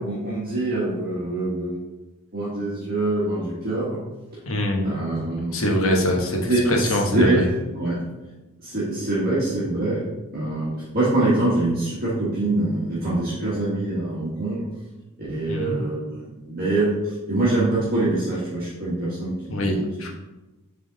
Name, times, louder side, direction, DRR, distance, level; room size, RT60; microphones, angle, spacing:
voice 1, 0.0-1.8 2.3-4.0 4.8-5.6 6.5-8.0 8.6-14.6 15.3-19.8, right 2 dB, 40° right, -9 dB, 1.5 m, -24 dB
voice 2, 4.5-4.9 5.5-7.4 15.5-15.8 19.5-20.1, left 1 dB, 65° left, 1 dB, 1.1 m, -23 dB
7.4 x 3.7 x 4.0 m, 1.1 s
head